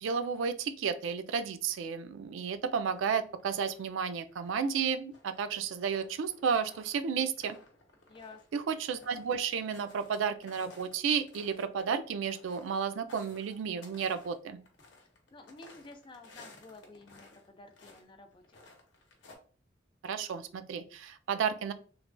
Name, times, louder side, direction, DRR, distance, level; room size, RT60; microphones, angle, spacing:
voice 1, 0.0-7.6 8.5-14.6 20.0-21.7, right 6 dB, 90° right, 11 dB, 0.3 m, -32 dB
sound 1, 2.9-3.9 4.3-10.2 10.4-17.5 17.7-18.0 18.4-19.3, left 2 dB, 70° left, 0.8 m, -57 dB
voice 2, 8.1-8.4 15.3-18.6, left 3 dB, 25° left, 6 dB, 0.3 m, -52 dB
3.1 x 2.2 x 2.5 m, 0.41 s
head